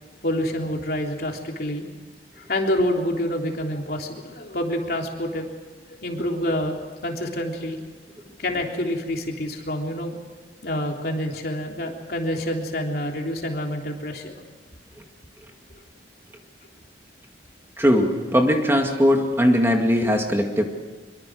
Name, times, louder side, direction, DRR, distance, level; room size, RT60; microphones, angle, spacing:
voice 1, 0.2-1.9 2.4-5.5 5.9-7.8 8.4-10.2 10.6-14.3, left 1 dB, 55° left, 1 dB, 3.5 m, -27 dB
voice 2, 17.8-20.6, equal, 15° right, 3 dB, 2.2 m, -19 dB
24.5 x 23.5 x 6.4 m, 1.4 s
head